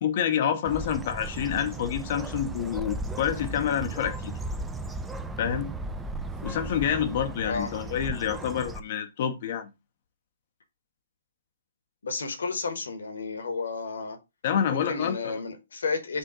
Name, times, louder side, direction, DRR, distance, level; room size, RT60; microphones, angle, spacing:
voice 1, 0.0-4.3 5.4-5.7 6.4-9.7 14.4-15.3, left 8 dB, 40° left, 0.6 m, -28 dB
Bird, 0.6-8.8, right 2 dB, 5° right, 0.3 m, -36 dB
voice 2, 12.0-14.2 14.7-16.2, left 4 dB, 60° left, 1.1 m, -32 dB
5.3 x 2.6 x 3.7 m
figure-of-eight pair, 125°, 0 cm